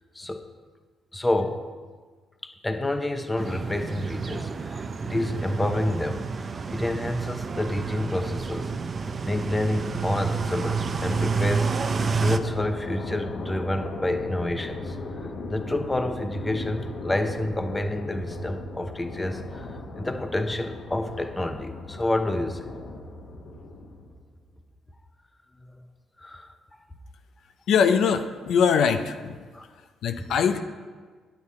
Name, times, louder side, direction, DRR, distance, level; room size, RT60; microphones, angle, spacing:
voice 1, 0.1-0.5 1.1-1.6 2.4-6.3 6.7-8.7 9.2-15.0 15.5-22.7 26.2-26.5 29.5-29.6 30.2-30.3, left 1 dB, 15° left, 7 dB, 0.8 m, -29 dB
sound 1, 3.4-12.4, right 5 dB, 40° right, 0.6 m, -29 dB
sound 2, 8.7-24.3, left 2 dB, 60° left, 1.3 m, -38 dB
voice 2, 27.7-29.4 30.0-30.6, left 6 dB, 75° left, 7 dB, 0.6 m, -22 dB
9.6 x 8.3 x 4.2 m, 1.5 s
cardioid pair, 90°, 0 cm